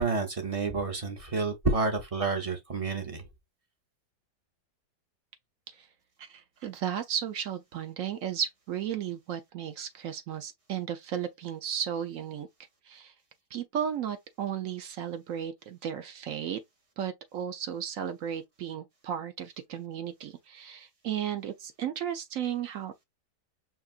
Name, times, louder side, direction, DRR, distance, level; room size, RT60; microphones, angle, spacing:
voice 1, 0.0-3.2, right 3 dB, 40° right, 0.5 m, -29 dB
voice 2, 6.2-12.5 12.9-13.1 13.5-16.6 17.0-23.0, right 9 dB, 65° right, 0.9 m, -34 dB
5.7 x 2.9 x 2.4 m
omnidirectional pair, 1.8 m